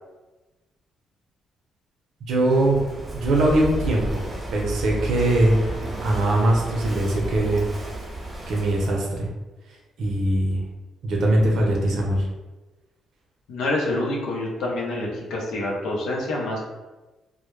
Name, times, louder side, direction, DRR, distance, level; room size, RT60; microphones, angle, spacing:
voice 1, 2.3-2.8 3.1-4.2 4.5-5.7 6.0-7.6 8.5-9.3 10.0-10.6 11.0-12.3, right 1 dB, 70° right, -1 dB, 0.6 m, -21 dB
Walk footsteps / Wind / Waves surf, 2.4-9.0, right 1 dB, 20° right, 0.6 m, -32 dB
voice 2, 13.5-16.6, left 2 dB, 80° left, -2 dB, 0.6 m, -27 dB
2.1 x 2.0 x 3.0 m, 1.1 s
cardioid pair, 90°, 0 cm